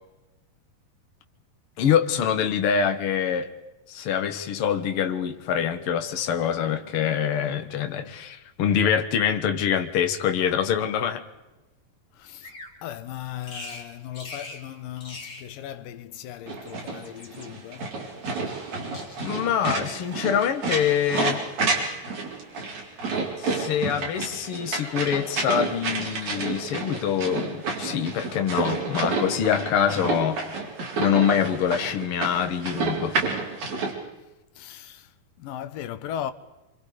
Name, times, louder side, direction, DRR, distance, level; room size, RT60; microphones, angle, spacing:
voice 1, 1.8-3.5 3.9-11.2 19.2-21.4 23.4-30.4 31.0-33.2, left 8 dB, 50° left, 1.8 m, -25 dB
voice 2, 12.1-12.5 12.8-17.9 34.6-35.1 35.4-36.3, left 11 dB, 75° left, 2.7 m, -37 dB
Bird vocalization bird call bird song, 12.4-12.8 13.4-13.9 14.1-14.6 15.0-15.5 16.5-17.5 18.2-18.7 18.9-19.4 19.9-20.3, left 2 dB, 25° left, 3.1 m, -42 dB
sound 1, 16.5-33.9, right 3 dB, 50° right, 5.3 m, -30 dB
27.0 x 26.0 x 5.0 m
omnidirectional pair, 4.2 m